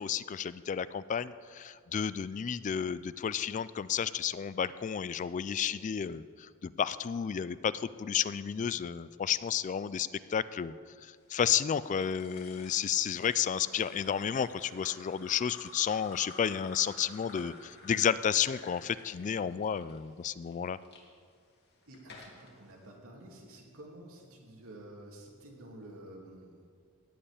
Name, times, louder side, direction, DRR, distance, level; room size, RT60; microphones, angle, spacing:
voice 1, 0.0-10.7 11.0-20.8, left 8 dB, 35° left, 16 dB, 0.3 m, -32 dB
voice 2, 8.4-8.7 21.9-26.7, right 1 dB, 85° right, -1 dB, 2.7 m, -50 dB
sound 1, 11.8-21.0 21.6-22.5, left 3 dB, 50° left, 2.5 m, -52 dB
15.5 x 5.5 x 9.8 m, 2.1 s
head